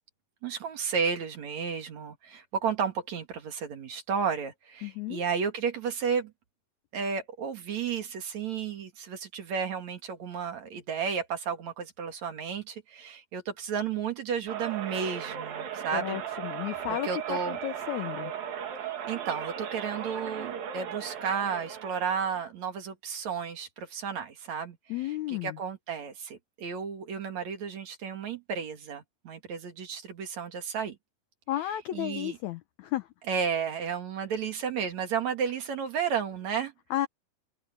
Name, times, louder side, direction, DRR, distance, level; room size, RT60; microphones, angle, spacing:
voice 1, 0.4-6.3 6.9-16.2 16.9-17.6 19.1-24.8 25.0-31.0 31.9-32.4 33.3-36.7, right 6 dB, 55° right, 3.0 m, -32 dB
voice 2, 4.8-5.2 15.9-18.3 24.9-25.6 31.5-33.1 36.9-37.1, left 14 dB, 85° left, 1.6 m, -33 dB
sound 1, 14.5-22.4, right 8 dB, 75° right, 4.0 m, -37 dB
omnidirectional pair, 4.2 m